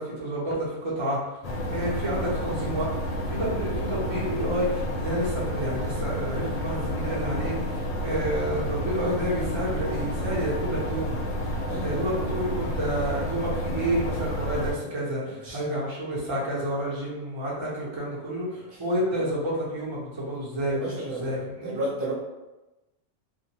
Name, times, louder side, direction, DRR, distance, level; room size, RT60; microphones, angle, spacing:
voice 1, 0.0-1.4 1.7-2.9 3.3-11.2 11.4-21.8, equal, 30° right, -6 dB, 0.7 m, -30 dB
sound 1, 1.4-14.7, equal, 60° left, 0.4 m, -30 dB
voice 2, 11.7-12.1 15.4-15.6 18.7-18.8 20.6-21.3 21.6-22.1, right 2 dB, 65° right, -5 dB, 0.8 m, -33 dB
2.4 x 2.3 x 2.8 m, 1.1 s
omnidirectional pair, 1.1 m